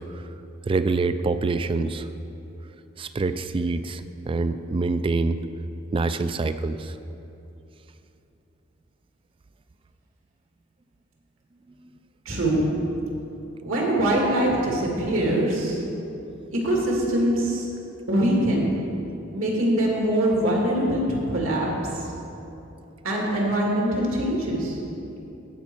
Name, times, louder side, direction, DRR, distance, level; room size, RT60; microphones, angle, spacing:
voice 1, 0.6-2.1 3.0-5.4 5.9-6.9 11.8-11.9 15.9-16.0 16.4-16.5, right 3 dB, 25° right, 11 dB, 0.3 m, -26 dB
voice 2, 12.3-12.6 13.6-15.8 16.6-17.7 18.1-18.7 19.3-22.1 23.0-24.8, right 1 dB, 80° right, -2 dB, 2.0 m, -23 dB
15.5 x 5.2 x 4.5 m, 2.8 s
head